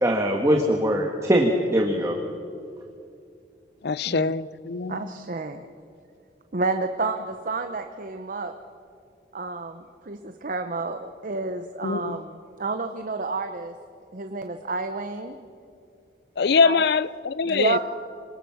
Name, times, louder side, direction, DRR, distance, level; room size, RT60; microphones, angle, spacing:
voice 1, 0.0-2.2, equal, 20° right, 1 dB, 1.6 m, -22 dB
voice 2, 3.8-5.1 11.8-12.2 16.4-17.8, left 5 dB, 65° left, 18 dB, 0.5 m, -23 dB
voice 3, 4.9-5.7 6.5-8.5 9.3-13.7 14.1-15.3 16.6-16.9 17.4-17.8, right 3 dB, 50° right, 7 dB, 0.9 m, -30 dB
27.5 x 19.5 x 7.2 m, 2.5 s
head